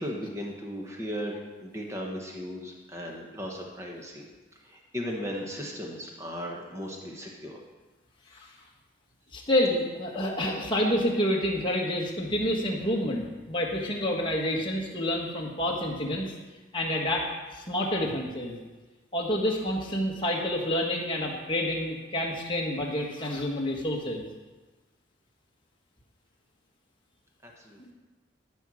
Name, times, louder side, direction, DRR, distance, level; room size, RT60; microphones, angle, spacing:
voice 1, 0.0-4.2 4.6-7.6 8.4-8.5 27.4-27.9, equal, 15° right, -1 dB, 1.3 m, -37 dB
voice 2, 9.3-16.3 16.7-17.3 17.5-18.6 19.1-24.3 27.8-27.9, left 1 dB, 25° left, -2 dB, 1.5 m, -28 dB
13.5 x 4.6 x 6.3 m, 1.2 s
head